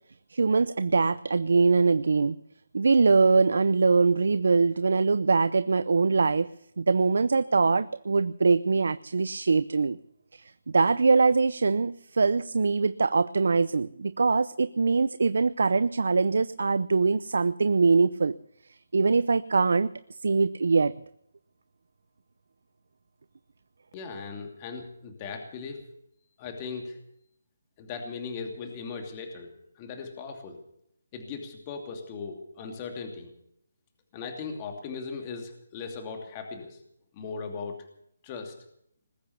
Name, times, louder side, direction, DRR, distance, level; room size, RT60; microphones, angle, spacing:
voice 1, 0.3-2.4 2.7-6.5 6.8-10.0 10.3-18.3 18.9-19.9 20.2-21.0, right 4 dB, 75° right, 15 dB, 0.6 m, -23 dB
voice 2, 23.9-25.8 26.4-27.0 27.8-29.5 29.8-30.6 31.1-33.3 34.1-36.8 37.1-37.8 38.2-38.5, left 5 dB, 25° left, 4 dB, 2.7 m, -38 dB
20.5 x 8.5 x 8.0 m, 0.71 s
hypercardioid pair, 165°, 0 cm